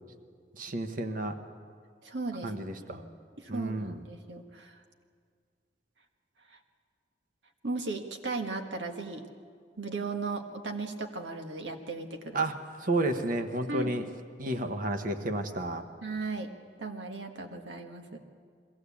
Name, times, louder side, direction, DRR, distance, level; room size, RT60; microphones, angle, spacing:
voice 1, 0.6-1.4 2.4-3.0 3.5-4.0 12.3-14.0 14.4-15.8, right 2 dB, 50° right, 7 dB, 1.1 m, -31 dB
voice 2, 2.0-3.0 3.4-4.8 6.5-6.6 7.6-9.2 9.8-12.4 13.7-13.9 16.0-16.5 16.8-18.2, right 3 dB, 90° right, 5 dB, 1.6 m, -36 dB
22.0 x 15.5 x 8.4 m, 2.1 s
head